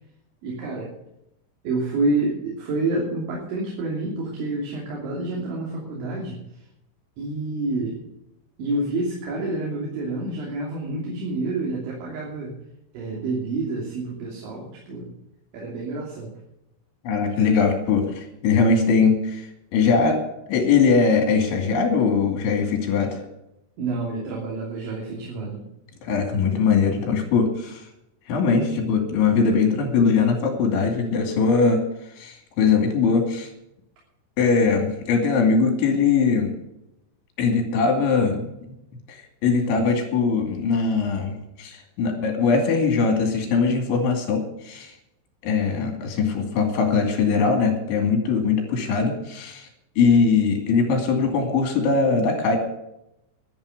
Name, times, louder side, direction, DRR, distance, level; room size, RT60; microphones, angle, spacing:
voice 1, 0.4-0.9 1.6-6.7 7.2-8.1 8.6-12.6 12.9-15.1 15.5-16.3 23.8-25.6, right 2 dB, 75° right, -3 dB, 5.3 m, -28 dB
voice 2, 17.0-19.5 19.7-20.2 20.5-23.2 26.0-27.8 28.3-31.8 32.2-33.5 34.4-36.5 37.4-38.4 39.1-44.9 45.4-49.7 50.0-52.6, left 5 dB, 75° left, 4 dB, 4.9 m, -21 dB
12.0 x 11.0 x 6.7 m, 0.84 s
omnidirectional pair, 5.5 m